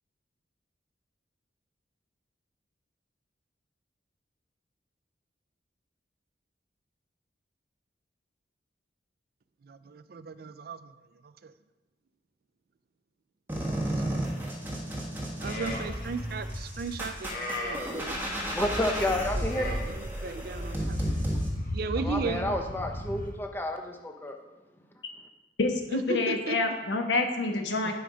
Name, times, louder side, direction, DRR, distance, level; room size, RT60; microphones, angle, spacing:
voice 1, 9.7-10.9 11.4-11.5 14.1-14.2 15.4-18.2 19.4-19.7 20.0-21.3 21.7-22.5 25.9-26.6, right 4 dB, 55° right, 13 dB, 0.4 m, -36 dB
sound 1, 13.5-21.5, right 1 dB, 10° right, 1.5 m, -34 dB
Livestock farm animals working animals, 15.4-23.3, left 1 dB, 50° left, 1.6 m, -35 dB
voice 2, 17.9-19.8 22.0-24.4, left 1 dB, 10° left, 3 dB, 0.8 m, -31 dB
voice 3, 25.6-27.9, left 3 dB, 75° left, 4 dB, 1.2 m, -27 dB
11.0 x 5.2 x 5.0 m, 1.1 s
head